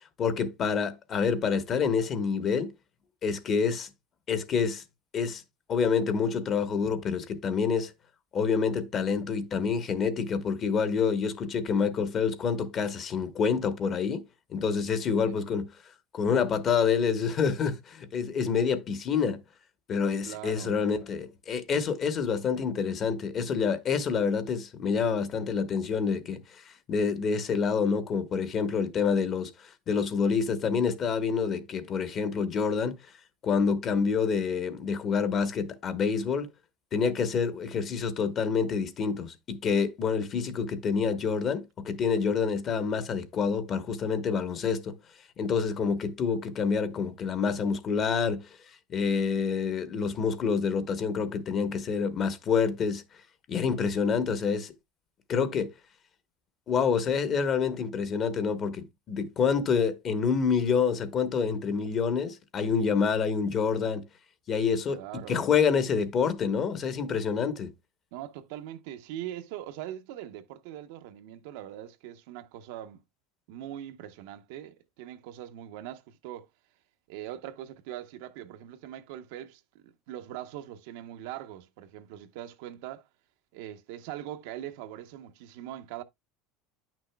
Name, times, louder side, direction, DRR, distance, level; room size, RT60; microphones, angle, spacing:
voice 1, 0.2-2.7 3.2-3.9 4.3-4.8 5.1-5.4 5.7-7.9 8.3-14.2 14.5-15.7 16.1-19.4 19.9-26.6 26.9-29.5 29.9-32.9 33.4-36.5 36.9-45.0 45.4-48.5 48.9-53.0 53.5-54.7 55.3-55.7 56.7-64.0 64.5-65.0 65.3-67.7, left 6 dB, 35° left, 1.1 m, -27 dB
voice 2, 20.2-20.9 64.9-65.5 68.1-73.0 73.5-76.5 77.1-83.1 83.5-86.0, right 12 dB, 70° right, 0.8 m, -41 dB
9.4 x 6.1 x 2.2 m
supercardioid pair, 130°, 0 cm